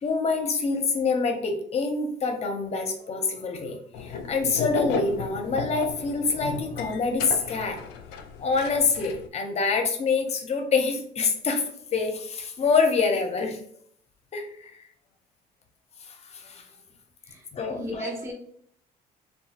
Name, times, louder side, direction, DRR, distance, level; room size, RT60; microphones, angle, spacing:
voice 1, 0.0-7.8 8.4-11.6 11.9-13.6 14.3-14.7 16.1-16.6 17.5-18.1, left 4 dB, 40° left, 5 dB, 0.7 m, -26 dB
sound 1, 3.9-9.3, left 5 dB, 85° left, 0.4 m, -34 dB
voice 2, 17.7-18.3, equal, 15° right, -2 dB, 0.7 m, -34 dB
3.0 x 2.3 x 2.8 m, 0.63 s
cardioid pair, 110°, 17 cm